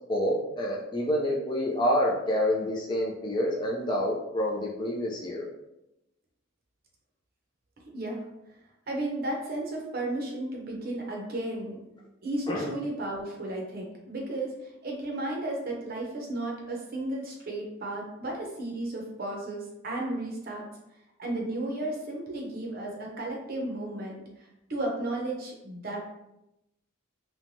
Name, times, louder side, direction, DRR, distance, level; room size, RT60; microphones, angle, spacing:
voice 1, 0.1-5.4 12.5-12.7, equal, 20° left, -2 dB, 0.3 m, -28 dB
voice 2, 8.9-11.8 12.2-14.5 14.8-20.7 21.2-24.2 24.7-26.1, right 1 dB, 45° right, -1 dB, 0.6 m, -33 dB
3.1 x 2.1 x 2.6 m, 0.88 s
head